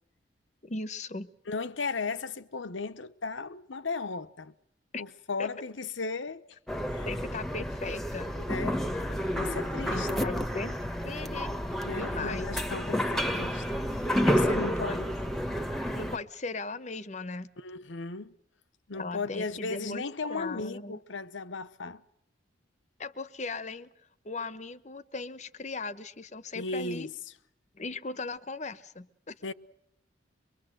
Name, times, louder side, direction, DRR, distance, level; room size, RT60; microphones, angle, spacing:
voice 1, 0.6-1.3 4.9-5.0 5.4-5.5 7.1-8.4 9.9-10.7 11.0-12.5 14.3-15.0 15.9-17.5 18.9-20.0 20.3-21.0 21.8-21.9 23.0-23.9 24.2-27.1 27.7-29.4, left 3 dB, 35° left, 0.9 m, -38 dB
voice 2, 1.5-4.5 5.0-6.4 6.9-7.1 8.4-8.8 9.4-10.3 11.8-13.8 14.2-15.1 17.6-18.3 18.9-22.0 26.5-27.1 29.4-29.5, left 4 dB, 80° left, 1.0 m, -36 dB
sound 1, 6.7-16.2, equal, ahead, 1.1 m, -30 dB
24.0 x 23.5 x 7.8 m
head